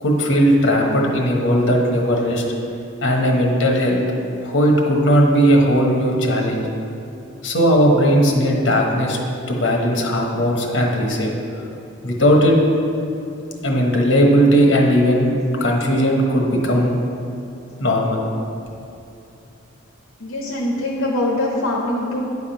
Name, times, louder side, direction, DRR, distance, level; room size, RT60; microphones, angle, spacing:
voice 1, 0.0-2.4 3.0-4.0 4.4-6.6 7.4-9.2 9.5-11.3 12.0-12.6 13.6-15.3 15.6-16.9 17.8-18.2, equal, 60° left, 0 dB, 1.1 m, -17 dB
voice 2, 20.2-22.2, left 1 dB, 75° left, -3 dB, 0.8 m, -23 dB
9.5 x 3.6 x 5.8 m, 2.7 s
head